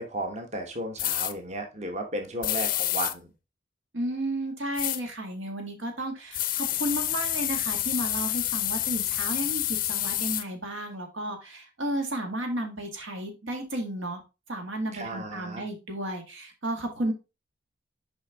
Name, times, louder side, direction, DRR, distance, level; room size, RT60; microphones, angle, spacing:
voice 1, 0.0-3.3 14.9-15.6, right 1 dB, 35° right, 4 dB, 1.0 m, -34 dB
sound 1, 1.0-1.3 2.4-3.1 4.8-5.0 6.3-10.4, left 14 dB, 45° left, 0.4 m, -28 dB
voice 2, 3.9-14.2 14.5-17.1, right 1 dB, 90° right, 4 dB, 1.7 m, -33 dB
6.5 x 5.1 x 3.4 m, 0.28 s
head